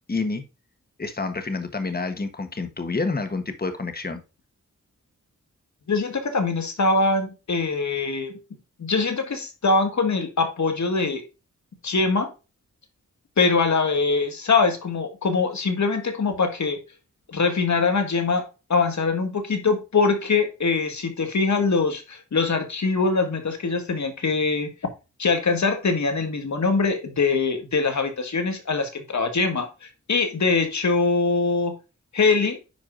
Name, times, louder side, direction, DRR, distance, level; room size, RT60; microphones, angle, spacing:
voice 1, 0.1-0.4 1.0-4.2, left 3 dB, 30° left, 8 dB, 1.3 m, -28 dB
voice 2, 5.9-8.3 8.8-11.2 11.8-12.3 13.4-16.8 17.3-24.7 25.2-31.7 32.1-32.6, left 4 dB, 70° left, 6 dB, 1.9 m, -23 dB
10.5 x 4.7 x 2.5 m, 0.28 s
wide cardioid pair, 95°, 30 cm